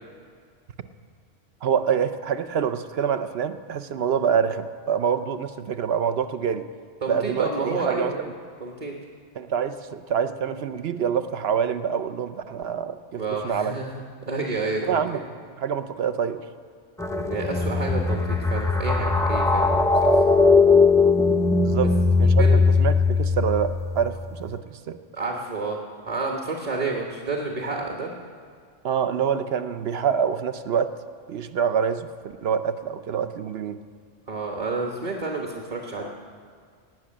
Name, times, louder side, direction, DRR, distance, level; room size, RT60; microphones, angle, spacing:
voice 1, 1.6-6.6 7.1-8.1 9.4-13.8 14.8-15.2 15.6-16.4 21.6-25.0 28.8-30.9 31.3-33.8, right 7 dB, 65° right, 11 dB, 0.8 m, -26 dB
voice 2, 7.0-8.3 8.6-8.9 13.2-13.9 14.3-15.2 17.3-20.2 22.2-22.6 25.1-25.8 26.1-28.1 34.3-36.1, right 3 dB, 35° right, 1 dB, 1.2 m, -30 dB
sound 1, 17.0-24.3, left 4 dB, 5° left, 0.4 m, -20 dB
18.0 x 6.2 x 8.8 m, 2.1 s
omnidirectional pair, 1.2 m